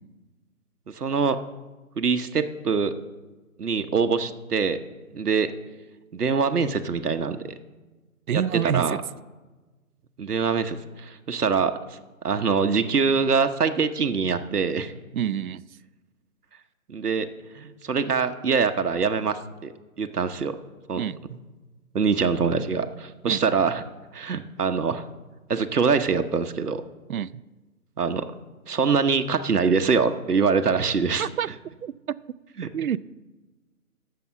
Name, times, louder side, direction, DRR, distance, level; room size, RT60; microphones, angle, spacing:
voice 1, 0.9-1.4 2.0-2.9 3.6-4.8 5.1-5.5 6.1-7.5 8.3-9.0 10.2-11.8 12.2-14.9 16.9-17.3 17.5-19.7 20.0-20.6 20.9-21.0 21.9-23.8 24.1-25.0 25.5-26.8 28.0-28.3 28.7-31.3 32.6-32.7, right 5 dB, 90° right, 8 dB, 1.0 m, -24 dB
voice 2, 8.3-9.0 15.1-15.6 20.9-21.2 23.2-23.4 27.1-27.4 31.2-31.5 31.8-32.2 32.7-33.0, right 9 dB, 70° right, 18 dB, 0.5 m, -27 dB
11.0 x 7.0 x 7.1 m, 1.2 s
figure-of-eight pair, 160°, 45 cm